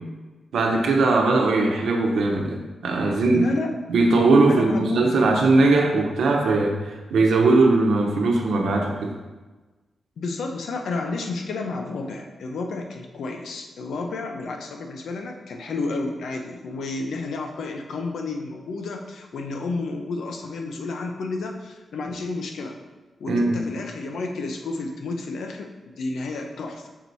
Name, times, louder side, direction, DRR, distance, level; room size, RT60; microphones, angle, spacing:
voice 1, 0.5-3.5 3.9-9.1 23.3-23.6, right 3 dB, 85° right, 2 dB, 0.9 m, -20 dB
voice 2, 3.3-3.7 4.5-5.3 10.2-22.8 23.2-26.9, left 3 dB, 75° left, 3 dB, 0.7 m, -31 dB
5.9 x 4.6 x 4.1 m, 1.2 s
wide cardioid pair, 180°, 0 cm